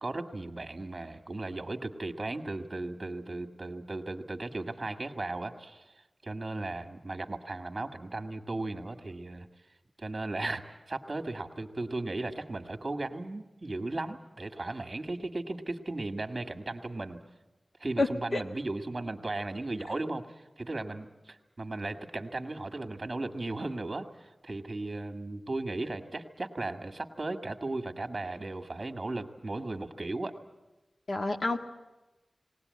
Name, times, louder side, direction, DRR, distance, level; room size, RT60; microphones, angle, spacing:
voice 1, 0.0-5.9 6.2-9.5 10.0-17.2 17.8-30.3, right 2 dB, 40° right, 7 dB, 1.7 m, -36 dB
voice 2, 18.0-18.4 19.9-20.0 31.1-31.6, left 2 dB, 75° left, 4 dB, 1.7 m, -29 dB
20.5 x 18.5 x 9.6 m, 1.1 s
wide cardioid pair, 85°, 0 cm